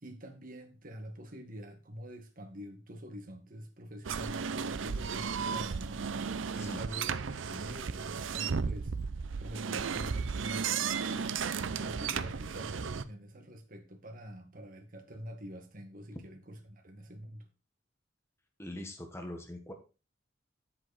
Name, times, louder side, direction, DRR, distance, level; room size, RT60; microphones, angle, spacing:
voice 1, 0.0-6.0 6.5-9.0 9.4-17.5, equal, 45° right, 4 dB, 1.8 m, -46 dB
sound 1, 4.0-13.0, right 6 dB, 75° right, 0.6 m, -34 dB
voice 2, 18.6-19.7, left 1 dB, 15° left, 4 dB, 1.5 m, -42 dB
8.0 x 7.6 x 4.2 m, 0.32 s
head